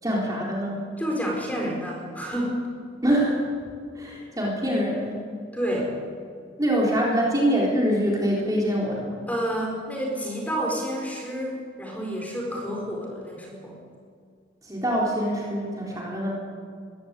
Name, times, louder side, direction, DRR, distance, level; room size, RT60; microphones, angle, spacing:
voice 1, 0.0-0.9 3.0-3.4 4.0-5.2 6.6-9.2 14.6-16.4, equal, 20° right, -3 dB, 4.1 m, -24 dB
voice 2, 1.0-2.7 5.5-6.0 9.3-13.8, equal, 10° left, -1 dB, 4.6 m, -29 dB
22.0 x 16.5 x 8.4 m, 2.2 s
head